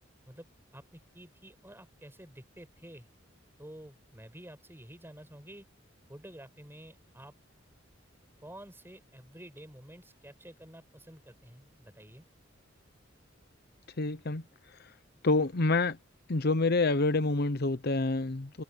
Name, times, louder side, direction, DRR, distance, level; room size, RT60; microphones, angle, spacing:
voice 1, 0.7-3.1 3.6-5.7 6.1-7.3 8.4-12.3, right 1 dB, 10° right, 7.5 m, -50 dB
voice 2, 14.0-14.4 15.2-16.0 16.3-18.6, left 3 dB, 55° left, 0.8 m, -27 dB
head